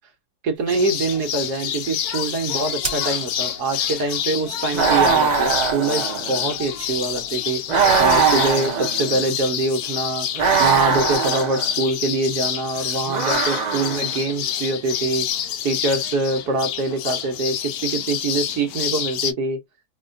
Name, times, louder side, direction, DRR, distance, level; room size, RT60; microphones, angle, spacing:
voice 1, 0.4-10.3 10.6-15.3 15.6-19.6, right 3 dB, 75° right, 1.5 m, -24 dB
sound 1, 0.5-7.3, right 2 dB, 25° right, 1.0 m, -41 dB
sound 2, 0.7-19.3, left 10 dB, 70° left, 1.0 m, -28 dB
sound 3, 4.7-6.5 7.7-9.2 10.3-11.7 13.1-14.2, right 5 dB, 55° right, 0.4 m, -21 dB
4.1 x 2.3 x 2.5 m
omnidirectional pair, 1.8 m